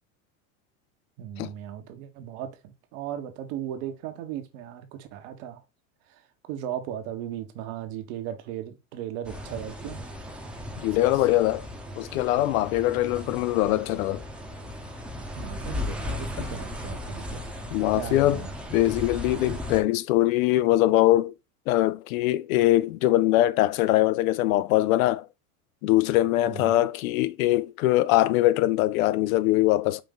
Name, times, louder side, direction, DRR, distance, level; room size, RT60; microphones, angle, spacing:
voice 1, 1.2-5.6 6.1-6.2 6.5-10.0 10.9-11.3 15.4-17.4 17.9-18.5 26.5-26.8, right 10 dB, 70° right, 1.1 m, -37 dB
sound 1, 9.2-19.8, left 1 dB, 5° right, 0.7 m, -36 dB
voice 2, 10.8-11.7 12.0-14.2 17.7-18.4 18.7-21.3 21.7-25.3 25.8-30.0, left 16 dB, 90° left, 0.5 m, -22 dB
5.1 x 2.6 x 3.7 m
supercardioid pair, 115°, 40 cm